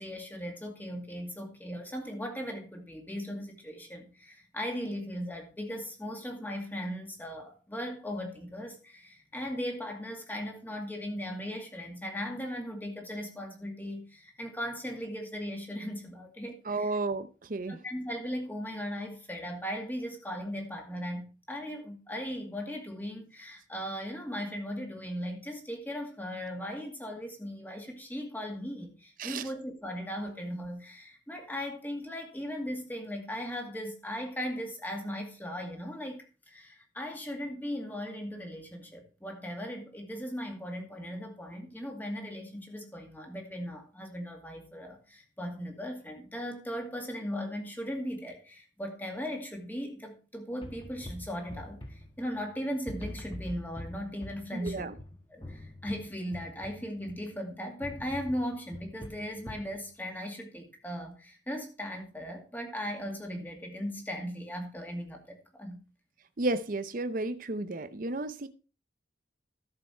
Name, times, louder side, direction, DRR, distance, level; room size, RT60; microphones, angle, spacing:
voice 1, 0.0-16.9 17.7-54.9 55.3-65.8, equal, 10° left, 2.3 m, -38 dB
voice 2, 16.6-17.8 29.2-29.5 54.5-55.0 66.4-68.5, right 2 dB, 50° right, 0.7 m, -32 dB
sound 1, 50.6-52.5 52.9-57.3 57.8-59.8, left 1 dB, 25° left, 1.7 m, -44 dB
13.5 x 6.9 x 4.4 m
head